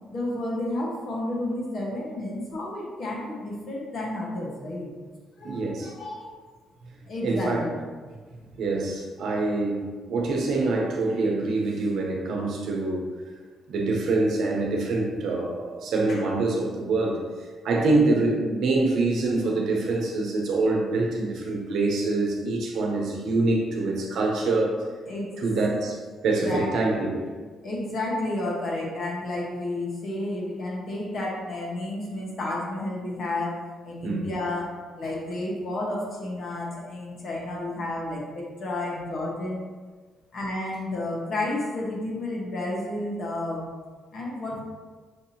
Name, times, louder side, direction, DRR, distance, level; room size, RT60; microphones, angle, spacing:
voice 1, 0.1-4.9 5.4-6.3 7.0-7.7 16.1-16.2 25.1-25.4 26.4-26.7 26.9-27.0 27.6-33.6 33.8-39.6 40.3-43.7 44.1-44.6, left 1 dB, 55° left, -3 dB, 1.3 m, -31 dB
voice 2, 5.4-5.9 7.2-7.7 8.6-13.1 13.7-17.2 17.6-24.7 25.4-27.3 34.0-34.3, right 2 dB, 75° right, -1 dB, 0.8 m, -25 dB
5.8 x 2.7 x 2.8 m, 1.4 s
cardioid pair, 90°, 0 cm